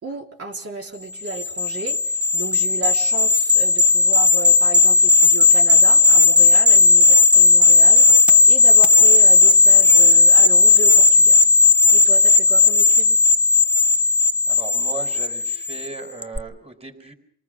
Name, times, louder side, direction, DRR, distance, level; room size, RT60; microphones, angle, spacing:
voice 1, 0.0-11.4 11.9-13.2, right 4 dB, 50° right, -1 dB, 3.5 m, -33 dB
sound 1, 1.3-15.9 16.2-16.4, left 3 dB, 5° right, 0.9 m, -14 dB
voice 2, 14.5-17.1, right 4 dB, 20° right, 6 dB, 4.6 m, -36 dB
27.5 x 19.5 x 6.3 m, 0.65 s
cardioid pair, 90°, 30 cm